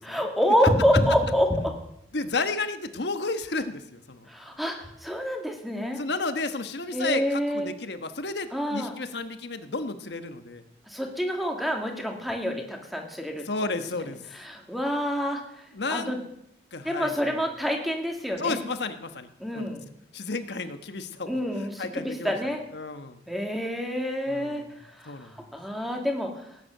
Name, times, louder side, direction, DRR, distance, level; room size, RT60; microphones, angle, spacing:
voice 1, 0.0-1.7 4.3-6.0 6.9-7.7 8.5-8.9 10.9-13.4 14.3-15.4 15.9-16.2 16.8-18.6 19.4-19.8 21.3-22.6 23.3-24.6 25.0-26.3, equal, ahead, 2 dB, 2.3 m, -27 dB
voice 2, 2.1-4.3 6.0-10.6 13.4-14.2 15.7-16.1 16.7-17.4 18.4-19.3 19.5-19.7 20.1-22.4 22.7-23.2 24.3-24.7 25.1-25.4, left 3 dB, 70° left, 9 dB, 1.3 m, -32 dB
18.0 x 9.7 x 6.6 m, 0.78 s
head